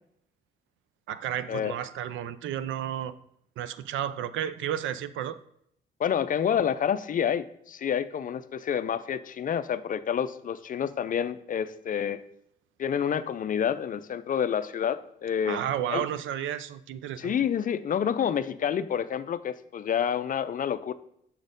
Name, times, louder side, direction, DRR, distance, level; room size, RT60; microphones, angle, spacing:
voice 1, 1.1-3.1 3.6-5.4 15.5-17.3, right 10 dB, 75° right, 15 dB, 0.5 m, -32 dB
voice 2, 6.0-12.2 12.8-15.6 15.9-16.1 17.2-20.9, left 8 dB, 45° left, 13 dB, 0.4 m, -28 dB
6.2 x 4.1 x 5.1 m, 0.72 s
cardioid pair, 90°, 20 cm